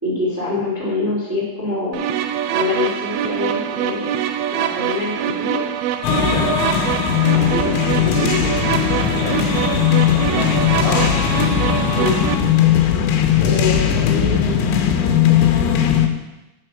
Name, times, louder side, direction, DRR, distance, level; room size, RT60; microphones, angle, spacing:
voice 1, 0.0-2.1 2.5-4.1 4.5-5.6 7.3-8.7 11.8-12.2 13.4-15.3, left 2 dB, 5° right, -7 dB, 1.4 m, -25 dB
sound 1, 1.9-12.4, right 10 dB, 90° right, 2.8 m, -24 dB
sound 2, 6.0-16.1, left 9 dB, 85° left, 3.0 m, -18 dB
voice 2, 8.8-9.8 10.1-11.4, left 2 dB, 50° left, -4 dB, 3.3 m, -28 dB
7.8 x 6.6 x 5.9 m, 0.99 s
omnidirectional pair, 5.1 m